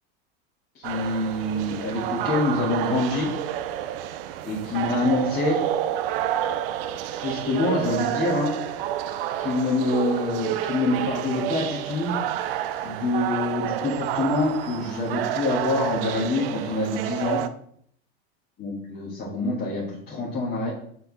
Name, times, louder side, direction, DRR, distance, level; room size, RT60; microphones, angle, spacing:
voice 1, 0.7-3.3 4.4-5.6 7.2-8.5 9.3-12.1 12.8-17.4 18.6-20.7, left 2 dB, 30° left, -6 dB, 2.4 m, -26 dB
sound 1, 0.8-17.5, right 11 dB, 70° right, 0.6 m, -29 dB
6.8 x 4.5 x 4.2 m, 0.63 s
supercardioid pair, 110°, 30 cm